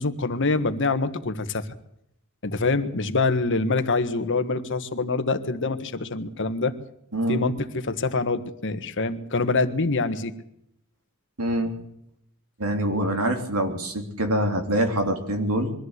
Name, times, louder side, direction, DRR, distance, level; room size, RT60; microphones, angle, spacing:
voice 1, 0.0-1.6 2.4-6.7 7.3-10.3, left 3 dB, 60° left, 9 dB, 1.5 m, -25 dB
voice 2, 7.1-7.4 11.4-11.7 12.6-15.7, right 1 dB, 85° right, 4 dB, 3.4 m, -25 dB
23.0 x 14.0 x 8.2 m, 0.76 s
head